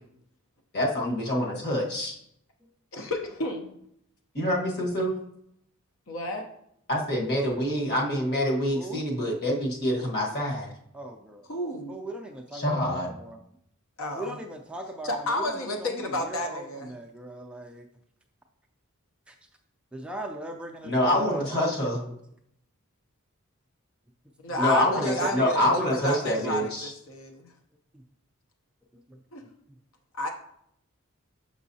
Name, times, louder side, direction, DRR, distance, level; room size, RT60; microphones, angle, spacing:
voice 1, 0.7-2.2 4.3-5.2 6.9-10.7 12.5-13.2 20.8-22.0 24.6-26.9, left 1 dB, 45° left, -1 dB, 1.4 m, -26 dB
voice 2, 2.9-3.7 6.1-6.5 11.5-12.0 14.0-14.4 15.0-16.9 24.4-26.7 27.1-27.5 29.3-29.4 30.1-30.3, left 1 dB, 65° left, 4 dB, 0.7 m, -31 dB
voice 3, 10.9-11.5 11.9-13.4 14.1-17.9 19.3-19.4 19.9-22.1 24.5-26.7 29.1-29.2, right 1 dB, 5° right, 1 dB, 0.3 m, -38 dB
6.1 x 6.0 x 2.7 m, 0.73 s
head